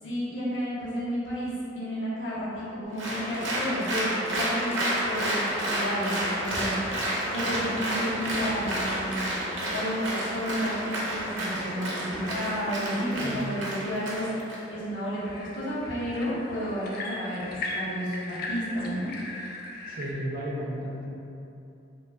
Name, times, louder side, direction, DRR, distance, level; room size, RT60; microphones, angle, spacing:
voice 1, 0.0-6.8 7.3-9.3 9.7-14.3 14.7-19.1, equal, 85° left, -10 dB, 1.0 m, -31 dB
Applause, 3.0-14.6, right 1 dB, 90° right, 0.6 m, -30 dB
sound 1, 4.3-20.1, left 2 dB, 55° left, 0.4 m, -43 dB
voice 2, 13.1-13.4 19.8-21.1, equal, 50° right, -5 dB, 0.6 m, -34 dB
2.4 x 2.3 x 3.4 m, 2.7 s
head